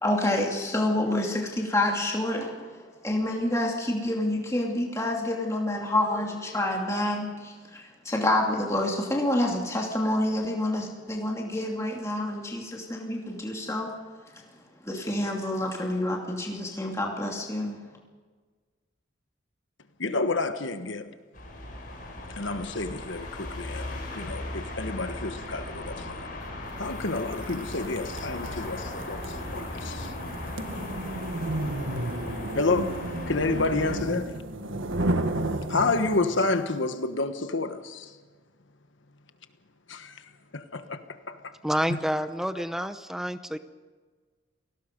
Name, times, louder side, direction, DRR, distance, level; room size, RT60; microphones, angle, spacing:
voice 1, 0.0-2.6 3.0-13.9 14.8-17.8, left 1 dB, 15° left, 2.7 m, -28 dB
voice 2, 20.0-21.0 22.4-23.3 23.6-23.8 24.2-24.4 24.8-25.6 26.8-28.8 29.1-29.2 29.5-29.6 32.6-33.0 33.3-34.2 35.7-37.8 41.9-42.0, left 3 dB, 75° left, 1.3 m, -28 dB
sound 1, 21.3-34.0, left 1 dB, 45° left, 5.4 m, -37 dB
sound 2, 27.1-36.5, right 1 dB, 85° right, 1.7 m, -32 dB
voice 3, 41.6-43.6, equal, ahead, 0.7 m, -28 dB
28.5 x 19.0 x 5.3 m
head